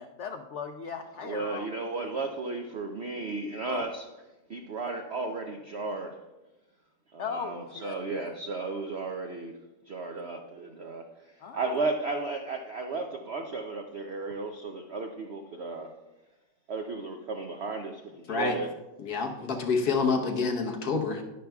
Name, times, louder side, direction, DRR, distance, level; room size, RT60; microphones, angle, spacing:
voice 1, 0.0-1.7 2.0-2.2 3.7-3.9 7.2-8.4 11.4-11.8, left 6 dB, 90° left, 6 dB, 0.6 m, -38 dB
voice 2, 1.2-4.1 4.5-6.2 7.1-9.5 9.9-15.9 16.7-18.7, right 3 dB, 70° right, 4 dB, 0.6 m, -34 dB
voice 3, 19.0-21.2, left 4 dB, 65° left, 0 dB, 1.6 m, -27 dB
11.0 x 10.5 x 2.3 m, 1.1 s
omnidirectional pair, 1.9 m